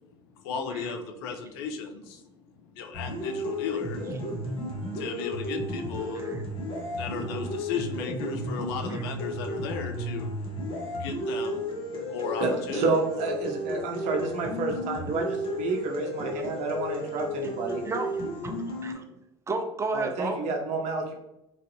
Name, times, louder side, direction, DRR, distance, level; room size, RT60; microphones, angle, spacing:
voice 1, 0.4-2.3 2.7-4.2 4.5-4.6 4.9-10.5 10.8-12.8, left 5 dB, 70° left, 5 dB, 0.4 m, -36 dB
sound 1, 2.9-18.9, equal, 40° left, 1.1 m, -33 dB
voice 2, 12.4-17.8 19.9-21.1, right 3 dB, 60° right, 2 dB, 0.7 m, -29 dB
voice 3, 17.8-19.2 19.5-20.4, right 3 dB, 20° right, 5 dB, 0.5 m, -33 dB
3.2 x 2.5 x 2.7 m, 0.90 s
hypercardioid pair, 70°, 14 cm